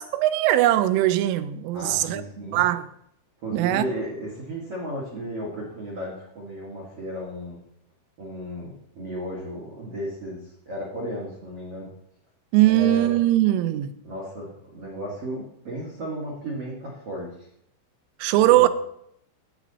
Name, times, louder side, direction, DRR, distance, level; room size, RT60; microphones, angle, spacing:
voice 1, 0.0-2.2 2.5-2.9 3.5-3.8 12.5-13.9 18.2-18.7, right 15 dB, 85° right, 3.0 m, -20 dB
voice 2, 1.7-2.6 3.4-7.6 8.2-11.9 12.6-13.2 14.0-17.5 18.2-18.7, equal, 55° right, 1.6 m, -34 dB
11.5 x 8.4 x 4.1 m
omnidirectional pair, 5.8 m